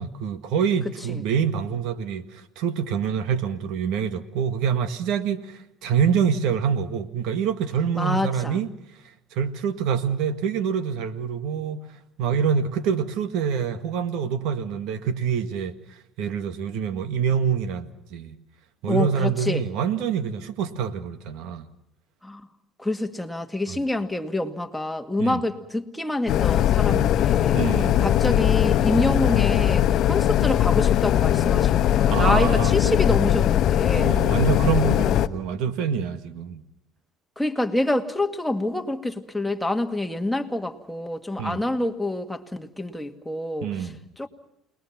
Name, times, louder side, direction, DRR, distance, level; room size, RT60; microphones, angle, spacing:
voice 1, 0.0-8.7 9.3-11.8 12.2-15.8 16.2-18.4 18.8-21.7 23.7-23.8 25.2-25.4 26.9-27.0 27.5-28.1 32.1-32.7 34.0-36.6 41.4-41.6 43.6-44.0, right 7 dB, 75° right, 1.8 m, -26 dB
voice 2, 8.0-8.6 18.9-19.6 22.2-22.4 22.8-27.6 28.0-34.2 37.4-44.3, left 1 dB, 5° left, 2.0 m, -27 dB
sound 1, 26.3-35.3, left 11 dB, 60° left, 1.0 m, -20 dB
29.0 x 20.5 x 6.0 m
supercardioid pair, 90°, 0 cm